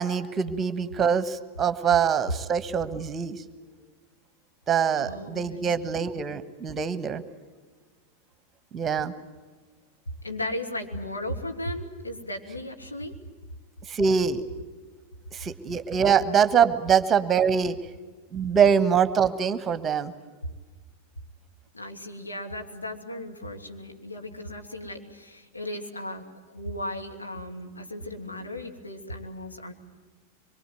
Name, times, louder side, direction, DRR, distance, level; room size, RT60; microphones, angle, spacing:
voice 1, 0.0-3.4 4.7-7.2 8.7-9.1 13.9-14.4 15.3-17.7 18.3-20.1, right 7 dB, 20° right, 13 dB, 1.3 m, -24 dB
voice 2, 5.0-6.0 10.2-13.1 21.7-29.7, left 1 dB, 80° left, 2 dB, 2.6 m, -36 dB
25.0 x 23.0 x 9.3 m, 1.4 s
figure-of-eight pair, 90°, 0 cm